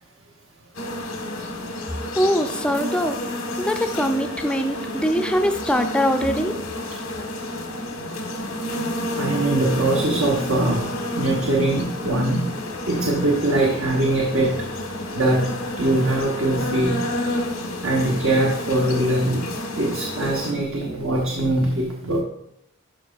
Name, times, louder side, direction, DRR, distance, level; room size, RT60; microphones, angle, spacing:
sound 1, 0.7-20.5, left 1 dB, 90° left, 1.4 m, -30 dB
voice 1, 2.0-3.2 3.6-6.6, equal, 5° left, 5 dB, 0.5 m, -22 dB
voice 2, 9.2-10.9 11.2-12.5 12.9-14.5 15.2-15.4 15.8-17.0 17.8-19.4 19.8-22.2, right 1 dB, 70° right, -2 dB, 1.1 m, -22 dB
11.5 x 5.0 x 2.4 m, 0.77 s
head